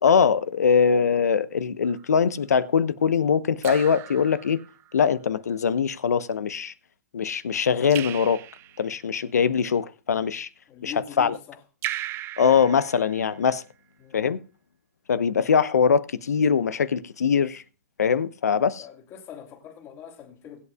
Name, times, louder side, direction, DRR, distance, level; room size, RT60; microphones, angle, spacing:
voice 1, 0.0-4.6 4.9-6.7 7.1-8.4 8.8-10.5 10.8-11.4 12.4-13.6 14.1-14.4 15.1-17.6 18.0-18.9, left 6 dB, 85° left, 0.9 m, -22 dB
Raindrop / Drip, 1.8-2.3 3.6-5.0 7.9-9.0 11.8-13.5, right 14 dB, 30° right, 0.5 m, -37 dB
voice 2, 10.7-11.6 14.0-14.2 18.8-20.7, left 8 dB, 30° left, 3.1 m, -42 dB
21.5 x 8.4 x 2.3 m
hypercardioid pair, 125°, 9 cm